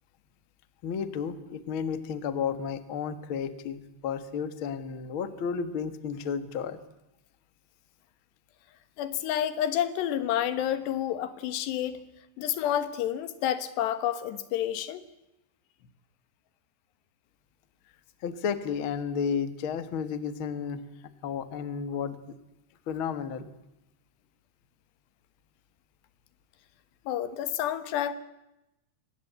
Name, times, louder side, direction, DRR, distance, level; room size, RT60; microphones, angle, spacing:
voice 1, 0.8-6.8 18.2-20.8 21.2-22.2 22.9-23.5, left 7 dB, 55° left, 12 dB, 1.4 m, -32 dB
voice 2, 9.0-12.0 12.4-15.0 27.1-28.1, left 11 dB, 85° left, 13 dB, 3.6 m, -29 dB
24.5 x 19.5 x 8.1 m, 0.92 s
omnidirectional pair, 4.7 m